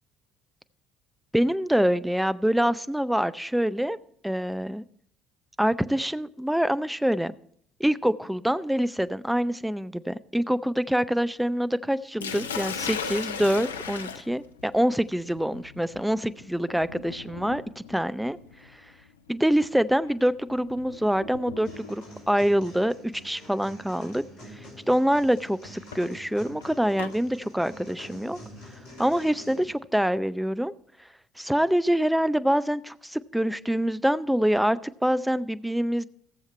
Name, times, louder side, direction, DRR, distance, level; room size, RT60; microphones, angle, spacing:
voice 1, 1.3-4.0 4.2-4.8 5.6-7.3 7.8-17.6 17.9-18.4 18.7-18.8 19.3-22.9 23.2-24.2 24.5-28.4 29.0-30.7 31.4-36.0, equal, 5° right, 14 dB, 0.6 m, -25 dB
Sink (filling or washing), 12.2-22.1 23.3-23.6 24.1-24.2 25.6-27.2, left 6 dB, 85° left, 0.5 m, -38 dB
sound 1, 21.6-29.6, equal, 65° left, 5.4 m, -46 dB
16.5 x 7.4 x 4.3 m, 0.63 s
figure-of-eight pair, 55°, 0 cm